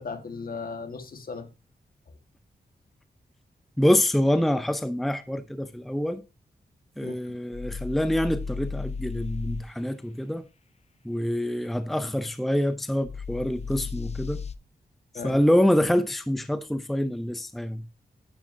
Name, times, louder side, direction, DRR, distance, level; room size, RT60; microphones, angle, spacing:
voice 1, 0.0-1.5 7.0-7.4 15.1-15.4, left 4 dB, 60° left, 1.6 m, -37 dB
voice 2, 3.8-6.2 7.0-10.4 11.0-14.4 15.2-17.8, equal, ahead, 0.6 m, -25 dB
sound 1, 7.5-9.7 13.0-14.5, left 5 dB, 40° left, 0.6 m, -35 dB
10.5 x 9.0 x 2.7 m
cardioid pair, 80°, 17 cm